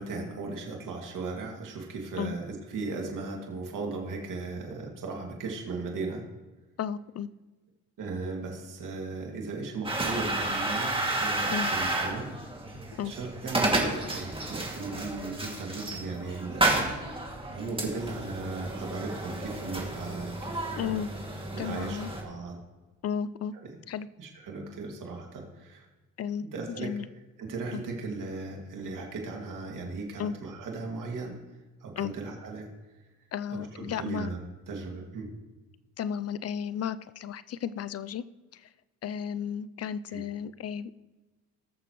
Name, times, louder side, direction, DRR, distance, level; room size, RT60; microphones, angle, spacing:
voice 1, 0.0-6.2 8.0-12.3 13.0-20.9 21.5-22.6 24.2-25.9 26.4-26.9 27.4-31.4 31.8-32.7 32.9-33.1 33.5-34.4 34.7-35.3 40.1-40.2, right 3 dB, 65° right, 1 dB, 2.3 m, -37 dB
voice 2, 6.8-7.3 11.5-11.7 13.0-13.1 20.7-21.1 21.6-22.1 23.0-23.5 23.9-24.1 26.2-27.1 27.7-27.8 30.2-30.3 32.0-32.1 33.3-34.3 36.0-38.2 38.5-38.7 39.0-41.0, left 8 dB, 45° left, 16 dB, 0.5 m, -33 dB
sound 1, 9.8-22.2, right 2 dB, 15° right, 2.4 m, -31 dB
19.5 x 6.7 x 3.1 m, 1.2 s
supercardioid pair, 65°, 34 cm